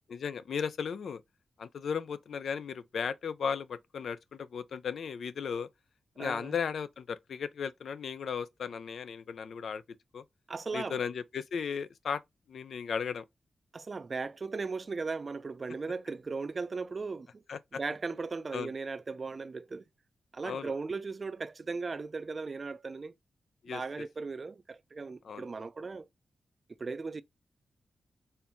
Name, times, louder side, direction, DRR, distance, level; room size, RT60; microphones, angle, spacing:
voice 1, 0.1-1.2 1.6-5.7 6.2-9.8 10.1-10.2 10.7-12.2 12.5-13.2 17.5-17.8 18.5-18.7 20.4-20.7 23.6-23.8 25.2-25.4, left 6 dB, 80° left, 0.4 m, -35 dB
voice 2, 6.2-6.6 10.5-11.0 13.7-17.4 17.7-19.8 20.3-23.1 23.7-26.1 26.8-27.2, right 4 dB, 45° right, 0.4 m, -37 dB
4.4 x 2.6 x 3.4 m
cardioid pair, 85°, 0 cm